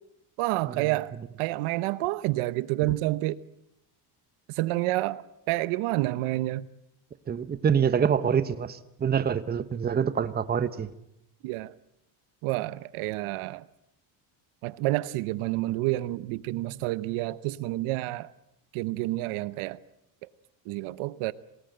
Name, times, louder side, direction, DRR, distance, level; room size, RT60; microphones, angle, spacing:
voice 1, 0.4-1.1 1.4-3.4 4.6-6.7 11.4-11.7 12.4-13.6 14.6-18.3 18.7-19.8 20.7-21.3, right 18 dB, 85° right, 1.0 m, -29 dB
voice 2, 7.3-10.9, right 7 dB, 20° right, 0.8 m, -26 dB
27.5 x 19.0 x 7.8 m
cardioid pair, 150°, 49 cm